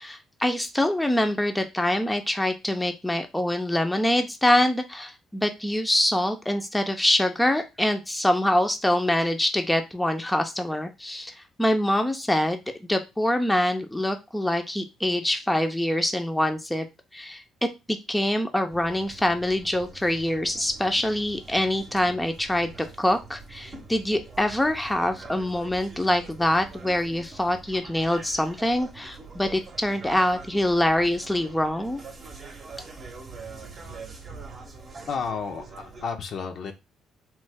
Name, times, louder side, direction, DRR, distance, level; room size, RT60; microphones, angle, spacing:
voice 1, 0.0-12.6 12.9-16.9 17.1-17.4 17.9-22.7 23.0-32.0, left 1 dB, 10° left, 6 dB, 0.5 m, -25 dB
sound 1, 18.7-36.1, right 4 dB, 40° right, 0.8 m, -44 dB
voice 2, 35.1-36.7, left 5 dB, 60° left, 5 dB, 0.5 m, -32 dB
3.0 x 2.0 x 3.3 m, 0.24 s
supercardioid pair, 70°, 0 cm